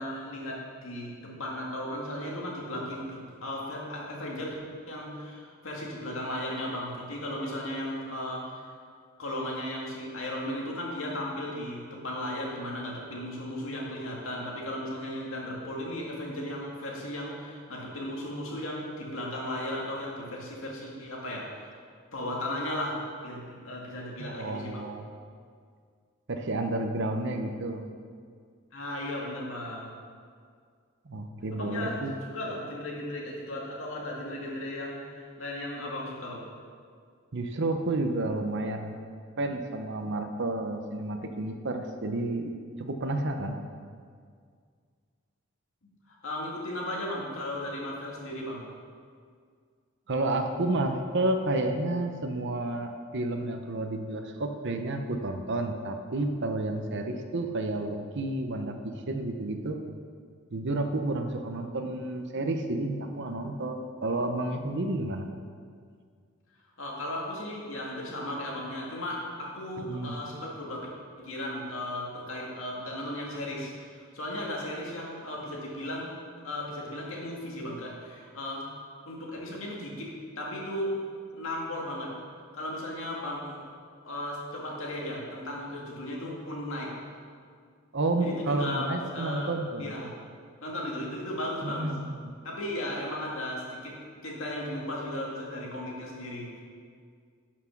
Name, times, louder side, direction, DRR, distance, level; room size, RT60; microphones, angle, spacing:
voice 1, 0.0-4.6 4.9-8.7 9.2-21.8 22.1-24.9 28.7-29.9 31.5-36.4 46.1-48.6 66.8-70.9 71.2-76.1 76.4-78.7 79.0-80.9 81.3-82.1 82.5-83.7 84.0-86.9 88.2-89.5 89.8-90.2 90.6-92.0 92.4-94.0 94.2-96.6, left 1 dB, 70° left, -3 dB, 2.2 m, -36 dB
voice 2, 24.2-25.0 26.3-27.8 31.1-32.1 37.3-39.0 39.4-42.5 42.8-43.6 50.1-59.8 60.5-65.3 69.8-70.1 87.9-89.9 91.6-92.2, right 2 dB, 60° right, 5 dB, 0.8 m, -31 dB
11.0 x 6.0 x 6.0 m, 2.1 s
head